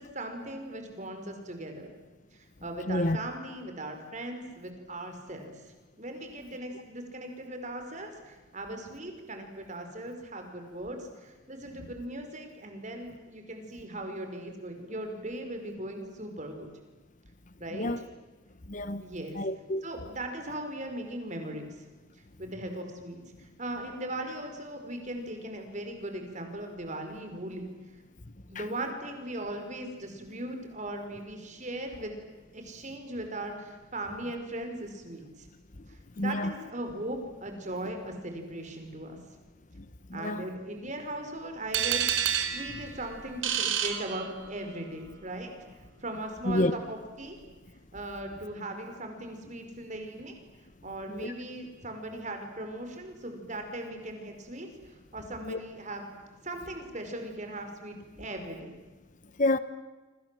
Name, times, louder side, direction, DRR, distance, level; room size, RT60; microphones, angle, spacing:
voice 1, 0.0-1.9 2.3-5.5 6.0-16.7 17.6-17.9 19.0-19.4 19.8-21.8 22.4-27.7 28.5-32.1 32.5-35.5 35.9-39.2 40.1-45.5 46.0-47.4 47.9-50.3 50.8-56.1 56.4-58.8, right 1 dB, 35° right, 5.2 m, -38 dB
voice 2, 2.9-3.2 17.7-18.0 18.7-19.0 19.3-19.8 28.5-28.6 36.2-36.5 40.1-40.4 46.4-46.7 51.2-51.3 55.4-55.6 59.4-59.6, left 1 dB, 40° left, 1.0 m, -28 dB
sound 1, 41.7-44.8, right 9 dB, 70° right, 2.9 m, -30 dB
27.5 x 26.5 x 7.8 m
head